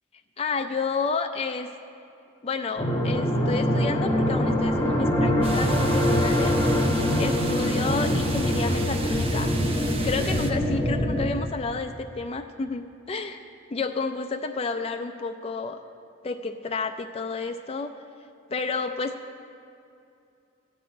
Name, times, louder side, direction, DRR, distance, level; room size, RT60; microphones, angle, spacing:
voice 1, 0.4-1.7 2.4-6.5 7.2-9.6 10.0-13.4 13.7-15.8 16.2-17.9 18.5-19.2, left 4 dB, 30° left, 6 dB, 0.4 m, -30 dB
sound 1, 2.8-11.3, equal, 15° left, 1.1 m, -24 dB
sound 2, 5.4-10.5, right 3 dB, 30° right, 0.8 m, -37 dB
13.0 x 5.5 x 8.5 m, 2.6 s
head